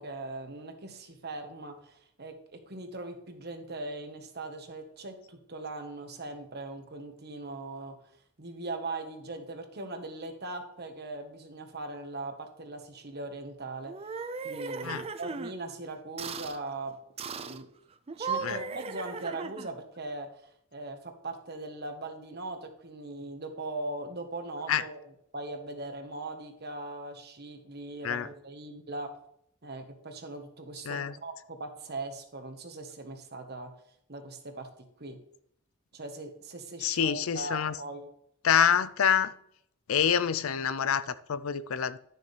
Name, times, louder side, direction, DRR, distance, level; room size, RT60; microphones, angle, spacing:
voice 1, 0.0-7.9 8.4-13.9 14.4-17.0 17.4-17.7 18.2-20.4 20.7-29.1 29.6-33.7 34.1-34.7 35.0-35.2 35.9-38.1, right 2 dB, 45° right, 1.3 m, -40 dB
sound 1, 13.8-15.5 16.2-16.6 17.2-17.6 18.1-19.8, right 5 dB, 25° right, 0.4 m, -37 dB
voice 2, 36.8-37.7 38.4-39.3 39.9-42.0, left 8 dB, 70° left, 0.5 m, -26 dB
11.5 x 6.9 x 3.3 m
head